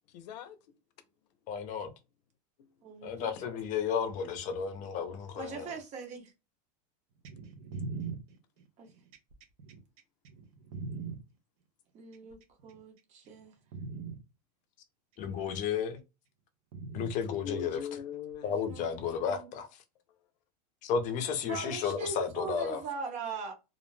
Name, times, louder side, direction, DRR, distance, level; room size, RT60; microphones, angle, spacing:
voice 1, 0.1-0.6 3.3-3.6 17.2-18.5, left 7 dB, 80° left, 0.6 m, -41 dB
voice 2, 1.5-1.9 3.0-5.7 15.2-16.0 16.9-17.8 18.4-19.7 20.8-22.8, left 7 dB, 35° left, 0.6 m, -33 dB
voice 3, 2.8-3.8 5.4-6.2 8.8-8.9 11.9-12.4 12.6-13.5 18.4-19.5 21.5-23.5, right 5 dB, 35° right, 0.9 m, -41 dB
sound 1, 7.2-11.2 12.1-12.8 13.3-13.4 13.7-14.2 15.3-15.4 16.7-17.2 18.3-18.4, right 4 dB, 65° right, 0.7 m, -40 dB
2.5 x 2.0 x 3.1 m
supercardioid pair, 135°, 21 cm